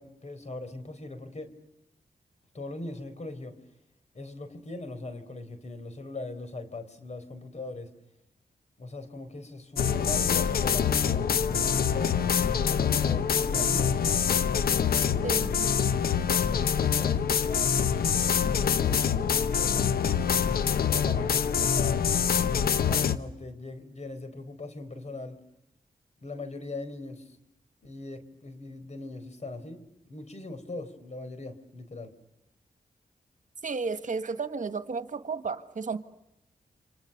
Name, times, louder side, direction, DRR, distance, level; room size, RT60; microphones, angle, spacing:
voice 1, 0.0-1.5 2.5-3.6 4.1-7.9 8.8-14.5 17.0-22.1 22.9-25.4 26.2-27.4 27.8-32.1, left 2 dB, 50° left, 10 dB, 4.2 m, -40 dB
sound 1, 9.8-23.2, left 7 dB, 85° left, 1.0 m, -25 dB
voice 2, 33.6-36.0, right 4 dB, 60° right, 11 dB, 1.6 m, -32 dB
29.5 x 26.5 x 6.8 m, 0.89 s
cardioid pair, 70°, 15 cm